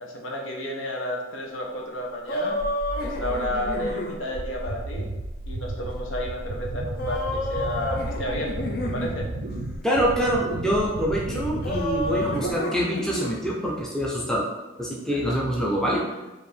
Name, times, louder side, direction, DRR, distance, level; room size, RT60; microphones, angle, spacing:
voice 1, 0.0-2.6 3.0-5.1 5.5-9.3 15.1-15.3, left 1 dB, 75° left, 0 dB, 0.8 m, -32 dB
sound 1, 2.3-4.2 7.0-9.2 11.6-13.4, left 1 dB, 45° left, 0.6 m, -30 dB
sound 2, 2.6-12.6, right 1 dB, 80° right, 0.5 m, -33 dB
voice 2, 9.8-14.4 14.8-16.0, equal, 5° left, -4 dB, 0.5 m, -25 dB
4.9 x 2.6 x 3.3 m, 1.1 s
head